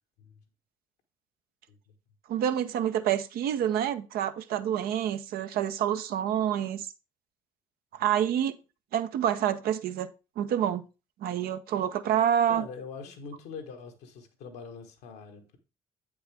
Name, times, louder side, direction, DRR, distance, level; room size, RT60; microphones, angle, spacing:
voice 1, 2.3-6.9 7.9-8.6 8.9-10.1 10.4-10.8 11.2-12.7, right 10 dB, 65° right, 0.6 m, -27 dB
voice 2, 12.5-15.6, left 5 dB, 75° left, 1.3 m, -43 dB
8.1 x 5.3 x 3.3 m
hypercardioid pair, 50°, 17 cm